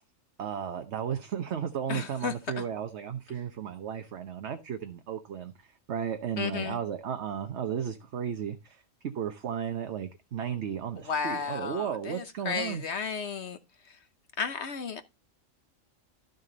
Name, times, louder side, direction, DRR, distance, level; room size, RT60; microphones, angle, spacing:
voice 1, 0.4-12.8, right 8 dB, 60° right, 1.1 m, -34 dB
voice 2, 1.9-2.6 6.4-6.8 11.0-13.6 13.8-14.0 14.4-15.0, left 5 dB, 60° left, 1.2 m, -33 dB
12.5 x 6.6 x 3.9 m
omnidirectional pair, 1.4 m